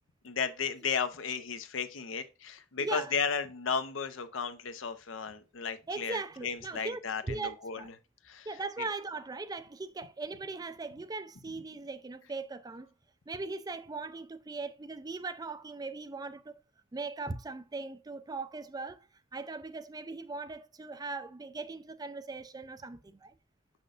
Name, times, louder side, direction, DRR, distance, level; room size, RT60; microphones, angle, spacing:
voice 1, 0.2-7.9 8.3-8.5 8.8-8.9, left 6 dB, 70° left, 0.7 m, -34 dB
voice 2, 2.8-3.1 5.9-7.9 8.5-12.9 13.3-16.6 16.9-19.1 19.3-23.3, right 3 dB, 20° right, 0.4 m, -39 dB
6.5 x 6.0 x 2.5 m
head